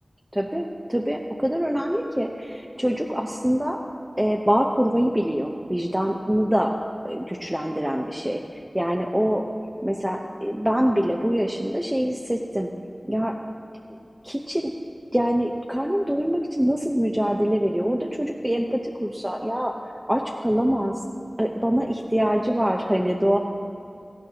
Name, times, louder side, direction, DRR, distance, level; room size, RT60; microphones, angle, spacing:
voice 1, 0.3-3.8 4.2-6.8 7.0-8.4 8.7-9.5 9.8-12.7 13.1-13.4 14.2-14.8 15.1-19.7 20.1-21.0 21.4-23.4, equal, 10° right, 0 dB, 0.6 m, -24 dB
17.0 x 14.5 x 2.9 m, 2.5 s
wide cardioid pair, 70°, 0 cm